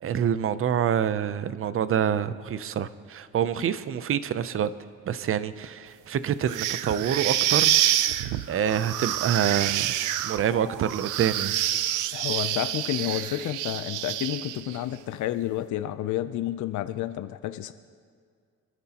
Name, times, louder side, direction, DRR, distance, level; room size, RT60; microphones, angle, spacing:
voice 1, 0.0-4.7 5.1-7.8 8.5-9.9 10.2-11.5, right 9 dB, 45° right, 14 dB, 0.6 m, -26 dB
sound 1, 6.5-14.8, right 13 dB, 90° right, 0.5 m, -27 dB
voice 2, 12.1-17.7, left 13 dB, 75° left, 11 dB, 0.6 m, -30 dB
25.5 x 11.0 x 2.9 m, 2.1 s
cardioid pair, 90°, 30 cm